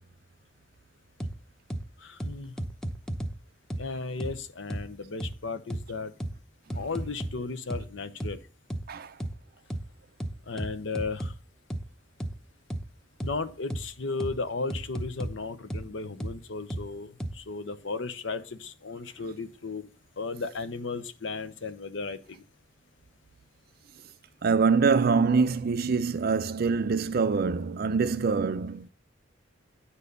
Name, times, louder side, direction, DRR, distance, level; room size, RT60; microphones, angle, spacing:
sound 1, 1.2-1.3 1.7-1.8 2.2-3.3 3.7-3.8 4.2-4.3 4.7-4.8 5.2-5.3 5.7-5.8 6.2-6.3 6.7-7.3 7.7-7.8 8.2-8.3 8.7-8.8 9.2-9.3 9.7-9.8 10.2-11.3 11.7-11.8 12.2-12.3 12.7-12.8 13.2-13.3 13.7-13.8 14.2-14.3 14.7-15.3 15.7-15.8 16.2-16.3 16.7-16.8 17.2-17.3, right 1 dB, 5° left, 0.7 m, -33 dB
voice 1, 2.0-2.5 3.8-6.1 6.7-8.4 10.5-11.3 13.2-19.9 20.2-22.4, left 4 dB, 70° left, 0.8 m, -35 dB
voice 2, 24.4-28.9, right 5 dB, 50° right, 0.4 m, -24 dB
9.8 x 4.2 x 6.7 m
head